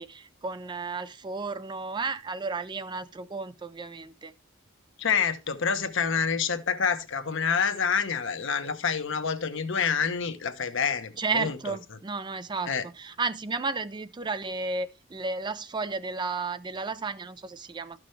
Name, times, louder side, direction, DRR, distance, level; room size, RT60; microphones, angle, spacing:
voice 1, 0.0-4.3 11.2-18.0, right 4 dB, 20° right, 0.4 m, -33 dB
voice 2, 5.0-11.6 12.7-12.8, left 6 dB, 65° left, 1.0 m, -27 dB
12.5 x 6.1 x 3.2 m
head